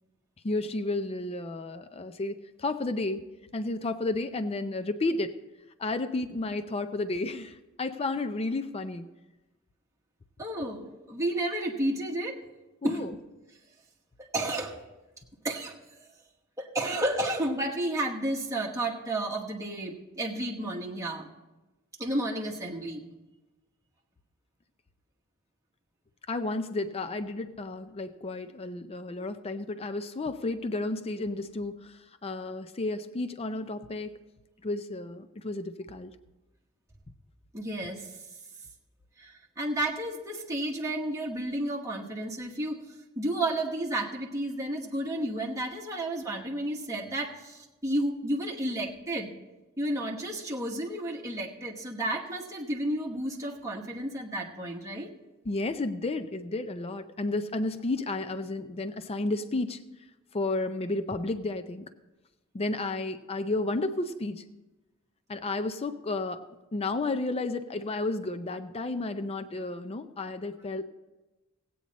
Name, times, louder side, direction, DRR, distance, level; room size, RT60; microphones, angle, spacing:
voice 1, 0.4-3.2 3.5-5.3 5.8-9.1 12.8-13.1 26.3-34.1 34.6-36.1 55.4-59.8 60.3-61.9 62.5-64.4 65.3-66.5 66.7-70.8, left 2 dB, 30° left, 10 dB, 0.5 m, -32 dB
voice 2, 10.4-12.4 12.8-13.0 14.2-14.8 15.4-16.1 16.6-21.3 22.0-23.1 37.5-38.2 39.2-42.9 43.2-49.3 49.8-55.1, right 1 dB, 15° right, -1 dB, 1.1 m, -32 dB
16.0 x 8.6 x 4.1 m, 1.1 s
head